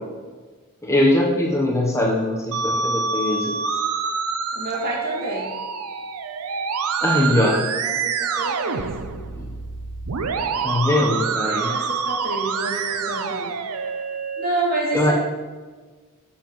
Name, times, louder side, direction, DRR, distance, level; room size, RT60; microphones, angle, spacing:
voice 1, 0.8-3.5 7.0-7.6 9.3-9.5 10.6-11.7 14.9-15.1, left 1 dB, 15° left, -2 dB, 0.9 m, -21 dB
Musical instrument, 2.5-14.5, right 5 dB, 75° right, 0.6 m, -26 dB
voice 2, 4.5-5.5 7.1-9.0 11.0-13.5 14.4-15.1, right 2 dB, 45° right, -4 dB, 2.4 m, -29 dB
9.6 x 7.4 x 3.1 m, 1.4 s
head